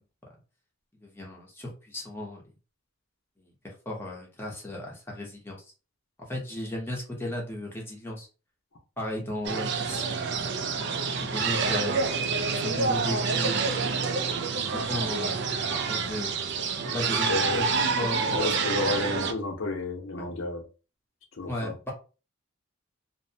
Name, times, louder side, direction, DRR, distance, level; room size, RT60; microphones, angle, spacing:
voice 1, 1.0-2.4 3.4-5.6 6.3-8.3 9.0-10.1 11.2-12.0 12.5-13.8 14.7-15.5 15.9-16.4 16.8-17.7 18.0-18.4 20.2-20.3 21.5-21.9, left 1 dB, 10° left, 0.8 m, -35 dB
sound 1, 9.4-19.3, right 4 dB, 55° right, 0.4 m, -27 dB
voice 2, 17.3-17.7 18.3-20.6 21.4-21.7, left 2 dB, 70° left, 0.7 m, -31 dB
2.6 x 2.1 x 2.7 m
head